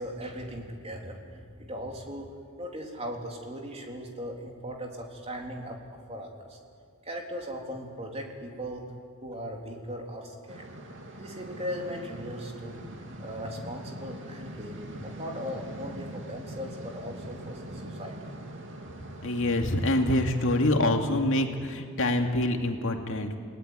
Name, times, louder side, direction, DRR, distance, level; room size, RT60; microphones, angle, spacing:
voice 1, 0.0-6.6 7.0-8.8 9.2-10.7 11.2-12.8 13.2-18.3, equal, 30° right, 1 dB, 3.5 m, -38 dB
sound 1, 10.5-20.7, right 1 dB, 55° right, 2.8 m, -42 dB
voice 2, 19.2-23.4, left 1 dB, 60° left, 4 dB, 2.4 m, -26 dB
28.5 x 19.0 x 9.8 m, 2.1 s
head